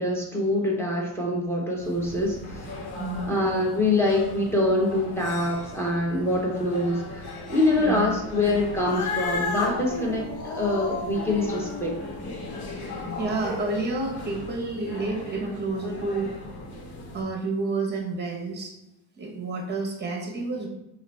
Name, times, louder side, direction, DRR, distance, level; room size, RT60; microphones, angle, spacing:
voice 1, 0.0-2.7 3.3-11.9, left 2 dB, 5° left, -2 dB, 0.9 m, -25 dB
sound 1, 1.8-17.2, left 2 dB, 85° left, 1.4 m, -39 dB
voice 2, 3.0-3.3 7.8-8.1 13.2-16.3 17.1-18.7 19.2-20.7, right 3 dB, 20° right, 1 dB, 1.0 m, -29 dB
Cat, 8.7-13.4, left 4 dB, 40° left, 0.7 m, -33 dB
4.7 x 2.6 x 3.3 m, 0.90 s
cardioid pair, 130°, 49 cm